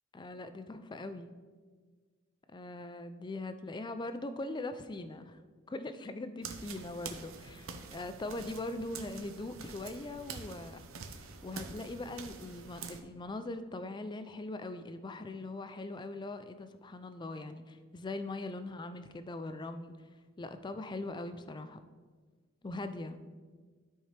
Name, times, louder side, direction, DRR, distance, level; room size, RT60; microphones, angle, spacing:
voice 1, 0.1-1.3 2.5-5.4 5.7-10.8 11.4-19.9 20.4-21.8 22.6-23.2, left 2 dB, 20° left, 10 dB, 0.4 m, -41 dB
sound 1, 6.4-13.0, right 5 dB, 85° right, 0.7 m, -46 dB
13.0 x 4.5 x 3.3 m, 1.5 s
head